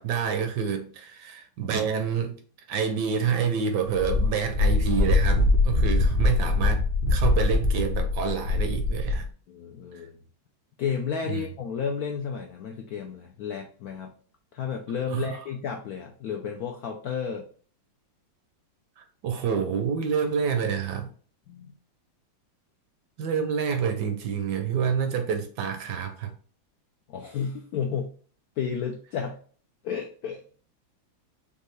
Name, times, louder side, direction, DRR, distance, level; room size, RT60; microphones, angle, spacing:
voice 1, 0.0-2.4 2.7-6.8 7.1-9.3 11.3-11.4 15.1-15.3 19.0-21.1 23.2-26.3, right 7 dB, 70° right, 1.1 m, -28 dB
Wind, 4.0-9.3, left 2 dB, 50° left, 0.8 m, -23 dB
voice 2, 9.5-10.2 10.8-14.1 14.5-17.5 21.5-21.7 27.1-28.1 28.6-29.4 29.8-30.6, left 7 dB, 80° left, 0.8 m, -32 dB
5.3 x 2.3 x 3.2 m
omnidirectional pair, 2.1 m